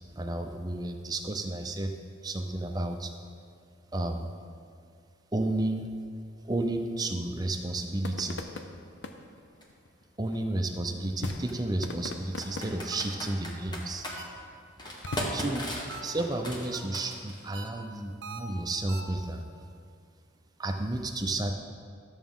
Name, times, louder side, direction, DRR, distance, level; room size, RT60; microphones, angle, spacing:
voice 1, 0.2-1.9 2.2-3.1 3.9-4.3 5.3-5.9 6.4-8.4 10.2-14.1 15.3-15.7 16.0-19.4 20.6-21.5, right 2 dB, 20° right, 4 dB, 0.5 m, -32 dB
sound 1, 7.6-18.0, left 3 dB, 60° left, 0.5 m, -44 dB
Computer keyboard, 9.6-9.7 11.3-11.5 12.4-14.2 14.8-17.5, equal, 20° left, 1.0 m, -37 dB
sound 2, 12.9-13.3 14.1-14.6 15.1-15.5 15.9-16.4 16.7-17.1 17.5-19.2, right 3 dB, 60° right, 0.9 m, -44 dB
12.5 x 7.1 x 3.7 m, 2.3 s
head